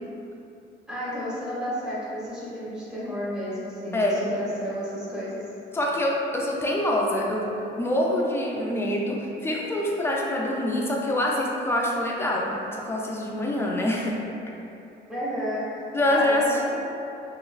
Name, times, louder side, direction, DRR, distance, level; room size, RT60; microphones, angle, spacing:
voice 1, 0.9-5.4 15.1-16.7, equal, 5° right, -10 dB, 0.9 m, -32 dB
voice 2, 5.7-7.5 7.8-14.2 15.9-16.4, left 1 dB, 10° left, -3 dB, 0.4 m, -25 dB
2.9 x 2.2 x 2.4 m, 2.8 s
cardioid pair, 90°, 20 cm